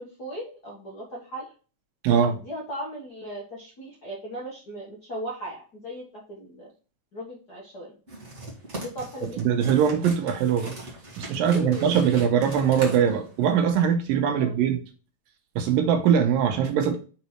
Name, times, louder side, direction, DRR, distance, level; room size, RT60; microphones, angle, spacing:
voice 1, 0.0-1.5 2.3-6.7 7.1-8.0 8.8-9.4 11.4-12.0 14.4-14.6, equal, 50° left, 1.1 m, -37 dB
voice 2, 2.0-2.4 9.2-10.7 11.2-14.8 15.6-17.0, right 8 dB, 75° right, 2.7 m, -22 dB
sound 1, 8.1-13.7, right 1 dB, 30° right, 1.4 m, -40 dB
6.0 x 4.1 x 4.5 m
omnidirectional pair, 4.1 m